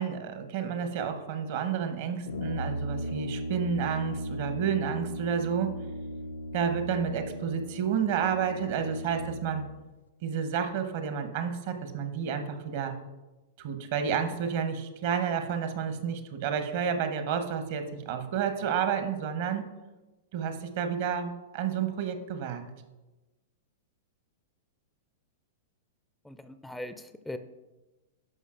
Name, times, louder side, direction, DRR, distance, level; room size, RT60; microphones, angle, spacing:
voice 1, 0.0-5.7 6.5-9.6 10.2-13.0 13.6-19.7 20.3-22.6, right 7 dB, 55° right, 8 dB, 0.8 m, -30 dB
Brass instrument, 2.2-9.7, equal, 75° left, 0.4 m, -36 dB
voice 2, 26.3-27.4, left 1 dB, 5° left, 10 dB, 0.4 m, -40 dB
11.0 x 5.4 x 2.5 m, 1.1 s
hypercardioid pair, 105°, 0 cm